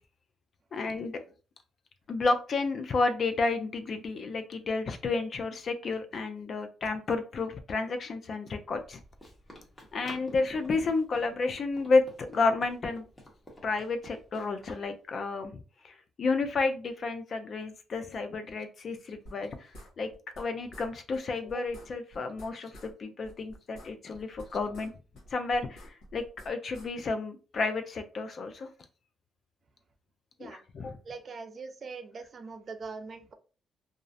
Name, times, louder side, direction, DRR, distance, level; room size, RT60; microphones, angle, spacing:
voice 1, 0.7-1.2 2.1-9.0 9.9-13.1 13.6-19.7 20.0-20.1 20.4-24.9 25.3-28.7 30.4-31.0, left 3 dB, 50° left, 7 dB, 0.4 m, -31 dB
Run, 8.7-14.9, left 1 dB, 15° left, 1.0 m, -51 dB
sound 1, 19.2-20.5 20.7-20.9 21.1-21.2 21.5-22.9 23.2-24.9 25.1-26.9, equal, 80° left, 1.0 m, -49 dB
voice 2, 31.0-33.3, right 4 dB, 45° right, 8 dB, 0.4 m, -42 dB
2.4 x 2.0 x 2.6 m, 0.36 s
cardioid pair, 90°, 0 cm